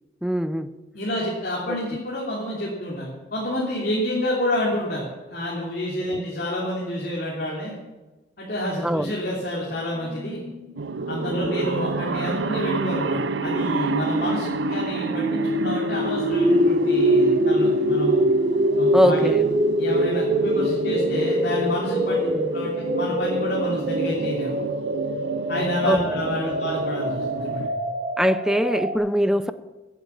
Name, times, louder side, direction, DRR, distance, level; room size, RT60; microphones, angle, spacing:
voice 1, 0.2-0.7 1.7-1.8 6.0-6.2 8.8-9.2 11.3-11.5 18.9-19.5 22.2-22.5 25.8-26.0 26.4-26.5 28.2-29.5, equal, 5° right, 12 dB, 0.6 m, -22 dB
voice 2, 0.9-7.7 8.4-10.4 11.1-18.2 18.8-19.3 19.8-24.5 25.5-27.8, left 1 dB, 60° left, -5 dB, 3.1 m, -29 dB
sound 1, 10.0-29.0, equal, 50° right, 3.6 m, -25 dB
sound 2, 10.8-27.7, right 4 dB, 85° right, 0.6 m, -31 dB
16.5 x 8.3 x 7.2 m, 1.2 s
head